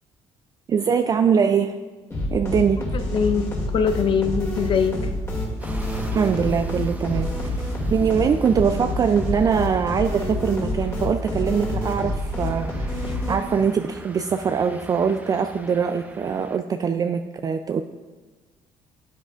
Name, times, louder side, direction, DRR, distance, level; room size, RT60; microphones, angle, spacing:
voice 1, 0.7-1.7 2.3-2.8 6.1-7.6 7.9-17.8, right 6 dB, 30° right, 7 dB, 0.3 m, -22 dB
sound 1, 2.1-13.7, left 1 dB, 25° left, 2.4 m, -28 dB
voice 2, 2.8-5.0, left 6 dB, 45° left, 9 dB, 0.7 m, -23 dB
sound 2, 5.6-16.6, right 1 dB, 15° right, 0.7 m, -42 dB
12.5 x 7.9 x 2.4 m, 1.3 s
cardioid pair, 105°, 12 cm